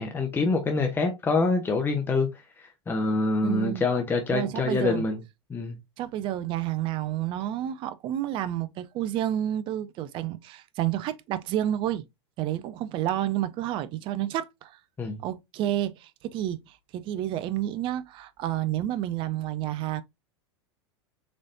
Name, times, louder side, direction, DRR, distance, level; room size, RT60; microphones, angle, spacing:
voice 1, 0.0-2.3 2.6-5.2 5.5-5.8 15.0-15.2, left 3 dB, 15° left, 0.7 m, -26 dB
voice 2, 3.4-3.8 4.3-5.1 6.0-12.0 12.4-14.8 15.2-20.0, right 12 dB, 35° right, 0.5 m, -30 dB
4.2 x 3.0 x 2.6 m
figure-of-eight pair, 90°, 15 cm